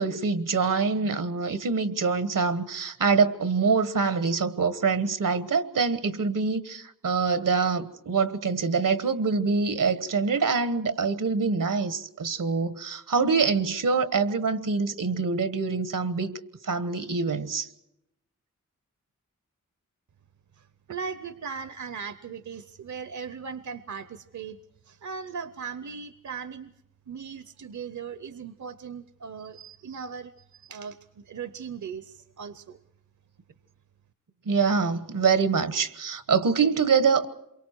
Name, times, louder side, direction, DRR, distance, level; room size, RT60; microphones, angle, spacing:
voice 1, 0.0-17.7 34.4-37.3, right 5 dB, 85° right, 1.3 m, -25 dB
voice 2, 20.6-24.6 24.8-26.7 27.1-32.8, right 6 dB, 65° right, 0.7 m, -38 dB
27.5 x 23.5 x 4.5 m
wide cardioid pair, 90°, 32 cm